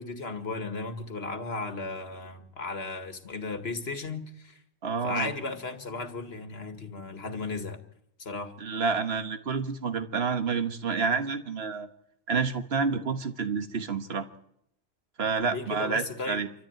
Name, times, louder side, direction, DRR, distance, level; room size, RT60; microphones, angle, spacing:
voice 1, 0.0-4.6 5.0-7.8 8.2-8.5 15.4-16.4, left 3 dB, 65° left, 2.1 m, -35 dB
voice 2, 4.8-5.3 8.6-11.9 12.3-14.3 15.2-16.5, right 5 dB, 65° right, 1.6 m, -29 dB
27.0 x 13.5 x 9.1 m
omnidirectional pair, 1.1 m